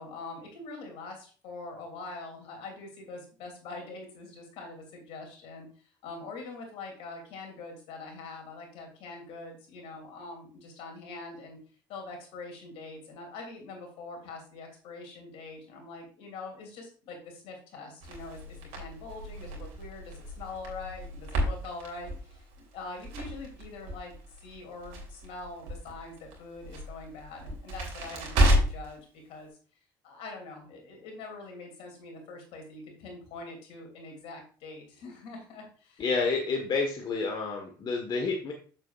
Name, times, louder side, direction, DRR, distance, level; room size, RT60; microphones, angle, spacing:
voice 1, 0.0-11.6 11.9-24.1 24.4-29.5 30.0-36.0, left 3 dB, 70° left, 2 dB, 2.9 m, -44 dB
Crackle, 18.0-28.9, equal, 80° right, 2.9 m, -32 dB
voice 2, 36.0-38.5, left 4 dB, 45° left, 3 dB, 1.4 m, -29 dB
7.6 x 7.4 x 2.5 m, 0.40 s
supercardioid pair, 75°, 10 cm